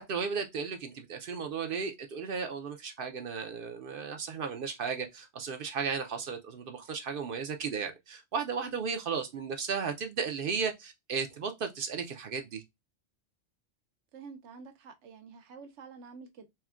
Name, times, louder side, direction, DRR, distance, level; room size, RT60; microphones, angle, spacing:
voice 1, 0.1-12.6, right 5 dB, 60° right, 0.7 m, -35 dB
voice 2, 14.1-16.5, right 5 dB, 80° right, 1.0 m, -48 dB
4.2 x 2.1 x 2.3 m
omnidirectional pair, 1.2 m